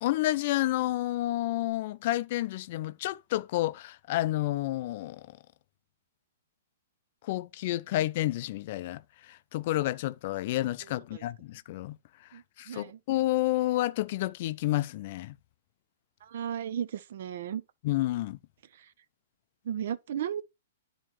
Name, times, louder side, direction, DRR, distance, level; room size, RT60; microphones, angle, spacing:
voice 1, 0.0-5.3 7.2-12.0 12.3-15.4 17.8-18.4, left 16 dB, 50° left, 0.4 m, -30 dB
voice 2, 12.3-13.0 16.2-17.6 19.7-20.4, right 9 dB, 65° right, 0.5 m, -35 dB
10.0 x 4.3 x 3.0 m
hypercardioid pair, 140°, 0 cm